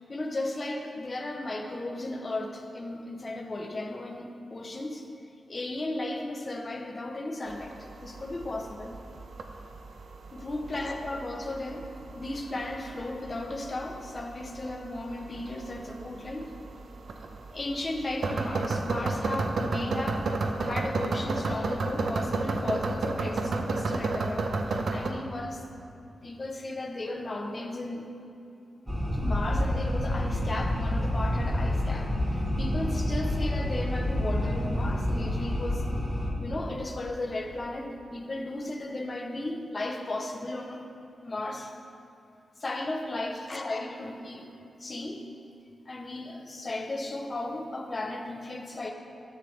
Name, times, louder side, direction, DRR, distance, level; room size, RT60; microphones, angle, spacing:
voice 1, 0.1-5.1 5.5-7.8 8.0-9.0 10.3-11.9 12.1-16.5 17.5-20.3 20.6-25.6 26.2-28.1 29.1-35.9 36.4-40.8 41.2-41.7 42.6-44.5 44.8-45.3 45.9-48.9, left 2 dB, 35° left, 2 dB, 0.8 m, -35 dB
sound 1, 7.5-25.1, right 3 dB, 70° right, 0.6 m, -33 dB
sound 2, 28.9-36.3, left 1 dB, 5° right, 1.4 m, -28 dB
9.9 x 6.8 x 3.3 m, 2.8 s
wide cardioid pair, 90°, 0 cm